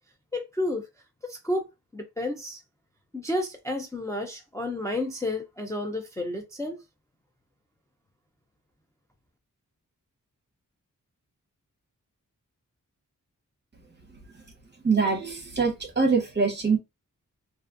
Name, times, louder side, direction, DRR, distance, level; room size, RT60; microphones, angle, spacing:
voice 1, 0.3-0.9 1.2-1.7 1.9-2.6 3.1-6.8, left 1 dB, 10° left, 0.4 m, -31 dB
voice 2, 14.8-16.8, right 4 dB, 30° right, 0.8 m, -24 dB
2.5 x 2.4 x 2.4 m
wide cardioid pair, 105°, 33 cm